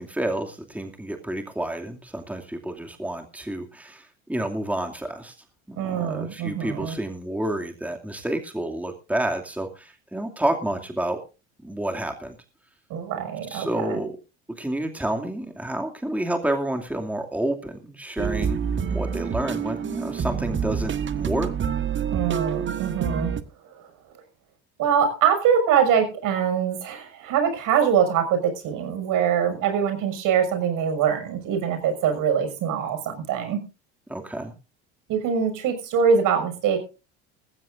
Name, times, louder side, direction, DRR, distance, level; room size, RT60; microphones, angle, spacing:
voice 1, 0.0-5.4 5.7-11.2 11.6-12.4 13.5-14.2 14.6-21.5 34.1-34.5, right 1 dB, 5° right, 3 dB, 2.5 m, -29 dB
voice 2, 5.8-7.0 12.9-14.0 22.1-23.3 24.8-33.6 35.1-36.8, right 7 dB, 60° right, 8 dB, 6.2 m, -23 dB
sound 1, 18.2-23.4, right 7 dB, 35° right, 1.5 m, -27 dB
20.0 x 15.0 x 2.6 m, 0.33 s
hypercardioid pair, 80°, 35 cm